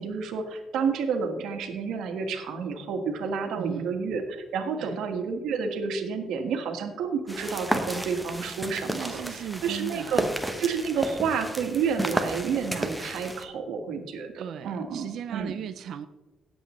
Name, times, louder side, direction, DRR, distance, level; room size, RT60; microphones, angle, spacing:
voice 1, 0.0-10.3 10.6-15.6, right 5 dB, 90° right, 5 dB, 1.4 m, -30 dB
voice 2, 3.6-3.9 4.8-5.0 9.0-10.2 14.4-16.1, right 9 dB, 65° right, 11 dB, 0.4 m, -37 dB
sound 1, 7.3-13.4, right 1 dB, 5° right, 0.8 m, -32 dB
18.0 x 7.7 x 3.1 m, 1.1 s
cardioid pair, 155°, 0 cm